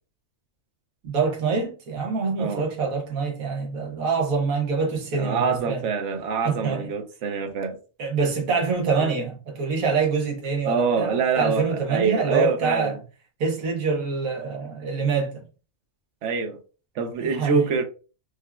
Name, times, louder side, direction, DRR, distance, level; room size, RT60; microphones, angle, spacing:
voice 1, 1.0-5.8 6.4-6.9 8.0-12.9 13.4-15.4 17.2-17.6, right 4 dB, 90° right, 1.2 m, -25 dB
voice 2, 5.1-7.8 9.0-9.1 10.6-12.9 16.2-16.6 17.0-17.8, right 5 dB, 65° right, 1.0 m, -25 dB
5.0 x 2.2 x 2.2 m
omnidirectional pair, 1.4 m